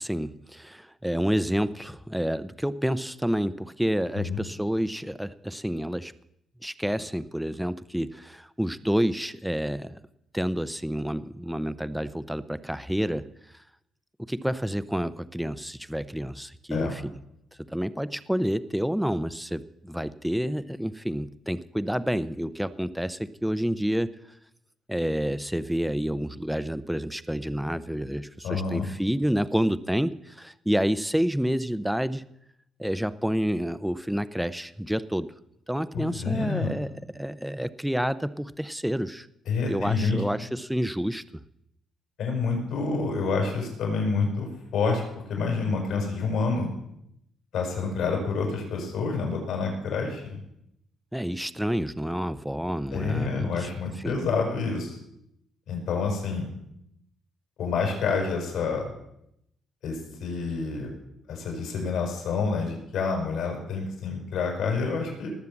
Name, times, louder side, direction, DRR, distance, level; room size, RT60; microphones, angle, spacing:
voice 1, 0.0-6.1 6.6-10.0 10.3-13.3 14.2-17.2 17.7-24.2 24.9-32.3 32.8-35.3 35.7-39.3 39.7-41.4 51.1-53.7 54.0-54.2, equal, 5° right, 14 dB, 0.7 m, -29 dB
voice 2, 28.4-28.9 35.9-36.7 39.5-40.2 42.2-44.5 44.7-45.0 45.3-46.7 47.5-50.4 52.9-55.0 55.7-56.5 57.6-58.8 59.8-60.9 61.3-65.3, left 4 dB, 80° left, 1 dB, 6.5 m, -28 dB
19.5 x 7.5 x 7.1 m, 0.78 s
cardioid pair, 90°, 0 cm